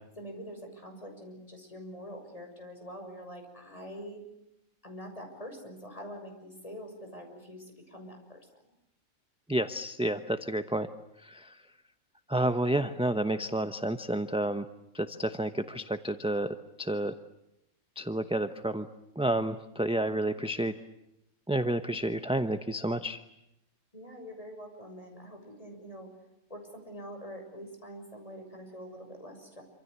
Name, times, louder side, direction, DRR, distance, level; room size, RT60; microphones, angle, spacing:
voice 1, 0.2-4.2 4.8-8.5 23.9-26.1 26.5-29.6, equal, 25° left, 3 dB, 6.7 m, -45 dB
voice 2, 9.5-10.9 11.2-11.5 12.3-14.6 14.9-17.1 18.0-18.9 19.2-20.7 21.5-23.2, right 1 dB, 5° right, 9 dB, 0.7 m, -30 dB
27.0 x 26.5 x 8.2 m, 0.83 s
omnidirectional pair, 1.5 m